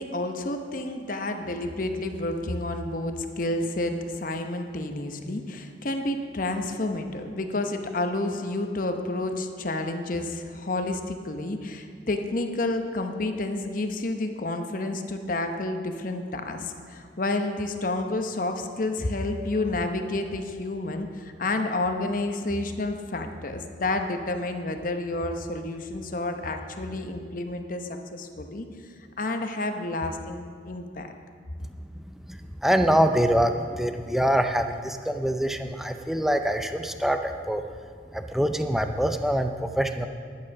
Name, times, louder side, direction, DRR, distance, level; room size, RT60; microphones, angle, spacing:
voice 1, 0.0-28.7 29.2-31.1, left 2 dB, 45° left, 6 dB, 0.9 m, -30 dB
voice 2, 32.1-37.6 38.1-40.1, equal, ahead, 7 dB, 0.5 m, -25 dB
11.5 x 9.4 x 5.9 m, 2.1 s
head